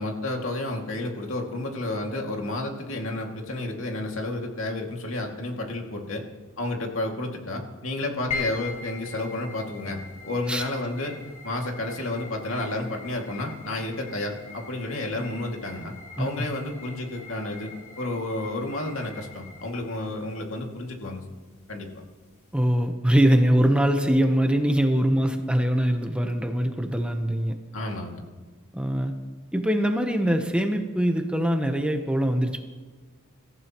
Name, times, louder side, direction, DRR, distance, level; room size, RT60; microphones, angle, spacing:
voice 1, 0.0-6.2 6.6-17.7 18.0-21.2 21.7-21.9 27.7-28.2, left 2 dB, 75° left, 1 dB, 2.3 m, -31 dB
sound 1, 8.3-22.8, left 4 dB, 35° left, 4.0 m, -42 dB
voice 2, 22.5-27.6 28.7-29.1 29.5-32.6, equal, 5° right, 5 dB, 0.9 m, -22 dB
26.0 x 15.0 x 3.0 m, 1.4 s
head